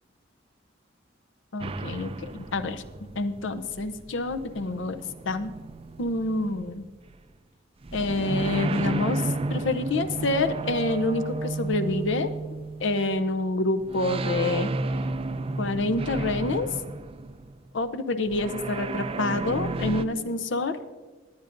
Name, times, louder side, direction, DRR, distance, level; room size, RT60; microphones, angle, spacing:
voice 1, 1.5-2.8 3.2-5.0 5.3-5.5 6.0-6.8 7.9-9.2 9.5-12.3 12.8-14.7 15.6-16.7 17.7-20.8, left 2 dB, 70° left, 9 dB, 0.7 m, -27 dB
sound 1, 1.6-7.2 7.8-13.3 13.8-17.7 18.3-20.0, right 2 dB, 30° right, 0.4 m, -32 dB
18.5 x 9.6 x 2.6 m, 1.3 s
head